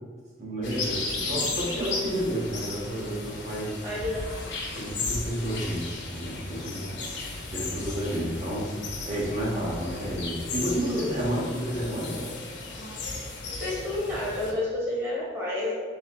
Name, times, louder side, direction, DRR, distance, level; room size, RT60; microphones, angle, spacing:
voice 1, 0.4-3.7 4.7-6.9 7.5-8.7 9.0-12.3, right 1 dB, 40° right, -6 dB, 1.3 m, -31 dB
sound 1, 0.6-14.5, left 3 dB, 75° left, 0.8 m, -35 dB
voice 2, 3.8-4.3 10.9-11.2 13.0-15.8, left 2 dB, 15° right, -7 dB, 1.0 m, -31 dB
3.4 x 3.1 x 4.5 m, 1.5 s
head